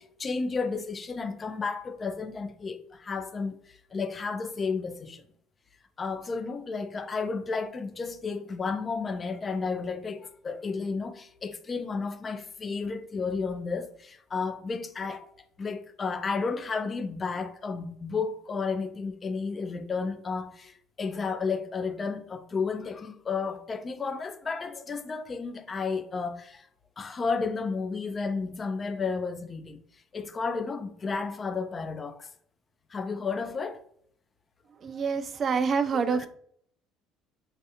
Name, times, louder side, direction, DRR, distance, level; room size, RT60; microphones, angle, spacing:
voice 1, 0.0-5.2 6.0-15.3 15.6-26.7 27.0-29.8 30.1-32.3 32.9-33.8 35.9-36.3, left 4 dB, 30° left, 0.4 m, -32 dB
voice 2, 34.8-36.3, right 5 dB, 40° right, 0.3 m, -27 dB
3.2 x 2.4 x 2.7 m
supercardioid pair, 105°, 0 cm